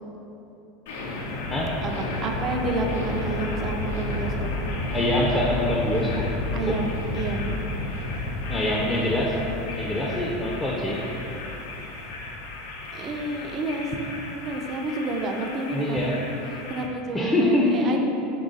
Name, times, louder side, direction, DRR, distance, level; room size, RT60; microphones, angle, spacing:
sound 1, 0.9-16.9, left 2 dB, 75° left, 0.5 m, -32 dB
voice 1, 1.8-4.5 6.5-7.5 12.9-16.2 16.5-18.0, right 2 dB, 40° right, 3 dB, 0.5 m, -30 dB
voice 2, 4.9-6.2 6.7-6.8 8.5-9.4 9.8-11.0 15.7-16.2 17.1-18.0, left 1 dB, 15° left, -3 dB, 0.5 m, -24 dB
3.7 x 3.0 x 4.0 m, 3.0 s
hypercardioid pair, 90°, 0 cm